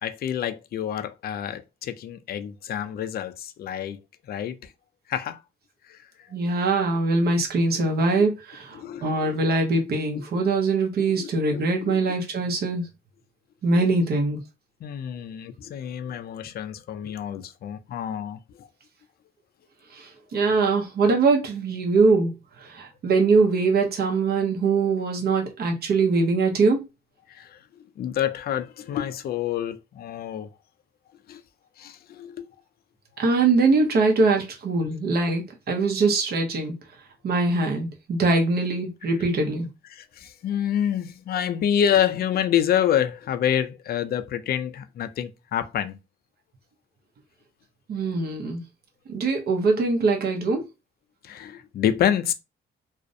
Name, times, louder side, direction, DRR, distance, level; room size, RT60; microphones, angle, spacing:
voice 1, 0.0-4.0 4.3-4.7 5.1-5.4 5.9-6.1 7.8-7.9 8.7-9.4 10.1-10.3 11.2-11.9 14.8-18.7 27.3-30.5 31.3-31.4 31.8-32.5 34.8-34.9 39.9-46.0 51.2-52.3, left 9 dB, 50° left, 0.4 m, -28 dB
voice 2, 6.3-12.9 13.6-14.4 19.9-26.8 33.2-36.7 37.2-39.7 47.9-48.6 49.1-50.6, right 3 dB, 55° right, 0.7 m, -22 dB
2.4 x 2.0 x 2.6 m
cardioid pair, 90°, 20 cm